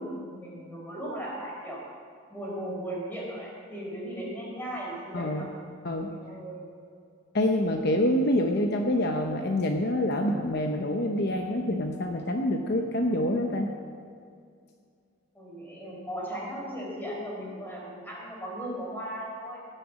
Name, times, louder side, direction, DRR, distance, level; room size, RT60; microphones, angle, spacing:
voice 1, 0.0-1.8 2.3-5.5 6.1-6.7 15.3-19.6, right 1 dB, 10° left, -4 dB, 4.2 m, -37 dB
voice 2, 5.1-5.5 5.8-6.2 7.3-13.7, left 1 dB, 55° left, 3 dB, 0.8 m, -26 dB
17.5 x 6.7 x 7.4 m, 2.3 s
head